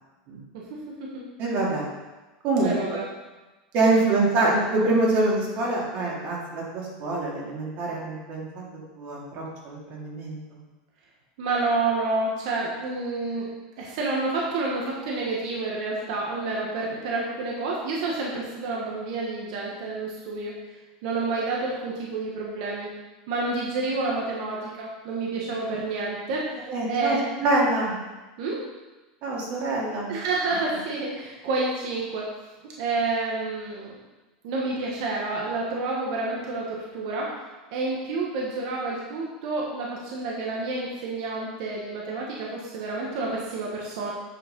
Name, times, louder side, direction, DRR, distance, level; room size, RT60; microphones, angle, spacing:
voice 1, 1.4-1.8 2.4-2.8 3.7-8.6 9.0-10.4 26.7-28.0 29.2-30.1, right 2 dB, 45° right, -4 dB, 2.6 m, -25 dB
voice 2, 2.6-3.0 11.4-13.5 13.8-20.6 21.0-22.9 23.3-26.5 26.9-27.2 28.4-28.6 30.1-32.3 32.6-34.0 34.4-37.3 37.7-44.1, right 3 dB, 60° right, -3 dB, 1.6 m, -29 dB
8.9 x 4.8 x 5.4 m, 1.2 s
supercardioid pair, 155°, 4 cm